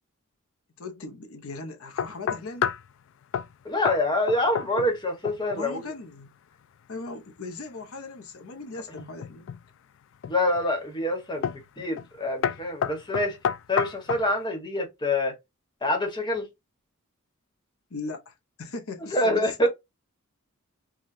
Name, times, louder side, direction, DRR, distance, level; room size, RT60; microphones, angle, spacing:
voice 1, 0.8-2.7 5.5-6.3 6.9-9.5 17.9-19.7, left 3 dB, 80° left, 0.8 m, -38 dB
sound 1, 2.0-2.9 3.3-3.5 3.9-4.0 4.3-5.0 5.3-5.6 9.0-9.6 10.2-10.6 11.4-11.7 12.0-12.2 12.4-14.3, left 8 dB, 60° left, 0.3 m, -29 dB
voice 2, 3.6-5.9 8.9-9.0 10.3-13.4 13.7-15.3 15.8-16.5 19.0-19.7, left 1 dB, 20° left, 1.2 m, -26 dB
4.8 x 2.3 x 2.7 m
head